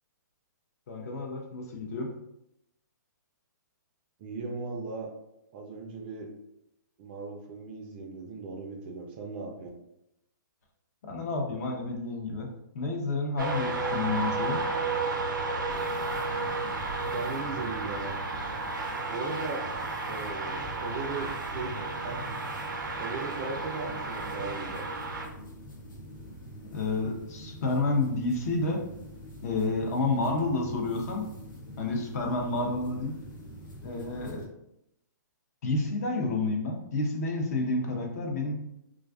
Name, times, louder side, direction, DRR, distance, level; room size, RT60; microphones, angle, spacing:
voice 1, 0.9-2.1 11.0-12.5 12.7-14.6 26.7-28.8 29.4-31.3 31.8-33.1 33.8-34.5 35.6-38.5, left 2 dB, 50° left, 2 dB, 0.6 m, -30 dB
voice 2, 4.2-5.1 5.5-6.3 7.0-9.7 17.0-18.2 19.1-19.6 20.1-22.3 23.0-24.8, right 4 dB, 30° right, 3 dB, 0.4 m, -37 dB
sound 1, 13.4-25.3, right 3 dB, 90° right, 0.5 m, -33 dB
sound 2, 15.7-34.5, equal, 85° left, 0.8 m, -45 dB
2.5 x 2.3 x 2.2 m, 0.81 s
hypercardioid pair, 145°, 10 cm